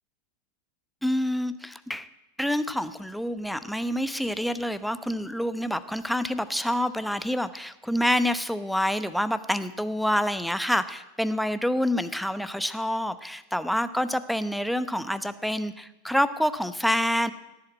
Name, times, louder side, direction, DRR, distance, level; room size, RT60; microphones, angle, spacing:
voice 1, 1.0-2.1 2.4-17.3, equal, ahead, 13 dB, 0.8 m, -27 dB
17.0 x 7.9 x 9.3 m, 1.0 s
figure-of-eight pair, 90°, 0 cm